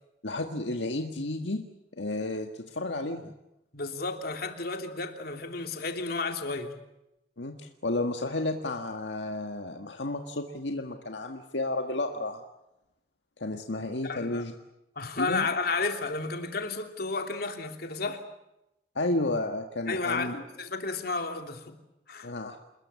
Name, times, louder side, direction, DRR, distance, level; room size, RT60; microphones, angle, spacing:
voice 1, 0.2-1.6 2.0-3.2 7.4-12.4 13.4-14.5 15.2-15.4 18.9-20.3 22.2-22.6, left 2 dB, 80° left, 4 dB, 1.7 m, -32 dB
voice 2, 3.7-6.7 14.0-14.4 15.0-18.2 19.9-21.8 22.1-22.3, left 3 dB, 60° left, 5 dB, 3.1 m, -32 dB
28.0 x 21.0 x 8.3 m, 0.89 s
head